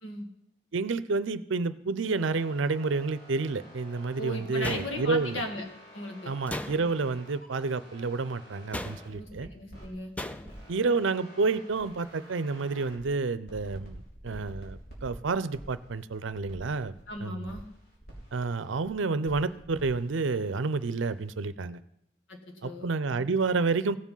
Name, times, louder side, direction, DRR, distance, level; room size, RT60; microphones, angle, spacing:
voice 1, 0.7-5.4 6.3-9.5 10.7-17.6 18.3-21.8 22.6-24.0, right 4 dB, 80° right, 15 dB, 0.6 m, -29 dB
sound 1, 2.1-9.9 10.4-13.1 13.5-17.1 17.5-18.9 19.2-21.3, equal, 50° left, 3.4 m, -50 dB
voice 2, 4.2-5.7 5.9-6.3 9.1-10.1 17.1-17.6 22.3-22.9, left 1 dB, 85° left, 3 dB, 1.9 m, -37 dB
sound 2, 4.6-5.4 6.5-7.1 8.7-9.3 10.2-10.7, left 1 dB, 5° left, 0.4 m, -37 dB
16.0 x 7.4 x 5.5 m, 0.77 s
head